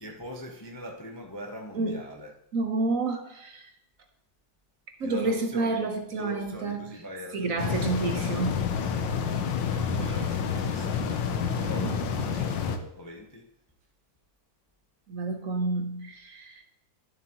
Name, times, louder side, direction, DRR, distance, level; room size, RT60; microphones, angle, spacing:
voice 1, 0.0-2.3 5.0-8.0 9.7-13.5, left 1 dB, 20° left, 0.6 m, -42 dB
voice 2, 2.5-3.7 5.0-7.0 7.3-8.8 11.5-12.0 15.1-16.6, right 3 dB, 55° right, 1.2 m, -30 dB
sound 1, 7.6-12.8, left 6 dB, 75° left, 1.5 m, -28 dB
12.0 x 7.3 x 3.0 m
omnidirectional pair, 2.0 m